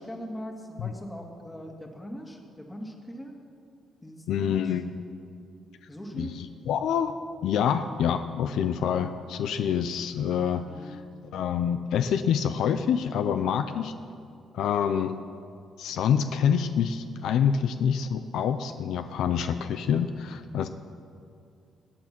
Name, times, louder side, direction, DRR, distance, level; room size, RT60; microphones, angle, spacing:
voice 1, 0.0-3.3 4.0-4.7 5.9-6.4 10.5-11.2 13.3-13.6, equal, 15° left, 1 dB, 2.2 m, -41 dB
voice 2, 4.3-5.1 6.1-7.1 7.4-11.0 11.3-13.9 14.5-15.2 15.8-20.7, left 8 dB, 80° left, 10 dB, 0.5 m, -27 dB
17.5 x 8.7 x 6.0 m, 2.4 s
cardioid pair, 90°, 0 cm